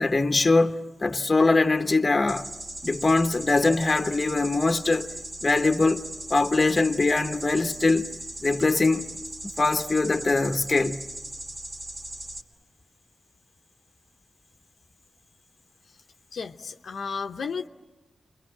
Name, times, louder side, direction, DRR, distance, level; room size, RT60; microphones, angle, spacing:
voice 1, 0.0-2.5 2.8-5.1 5.4-6.0 6.3-8.1 8.4-9.1 9.6-11.0, left 3 dB, 35° left, 1.2 m, -22 dB
sound 1, 2.3-12.4, right 2 dB, 45° right, 2.6 m, -38 dB
voice 2, 16.3-17.7, left 5 dB, 75° left, 0.9 m, -33 dB
29.5 x 23.5 x 7.6 m
cardioid pair, 65°, 0 cm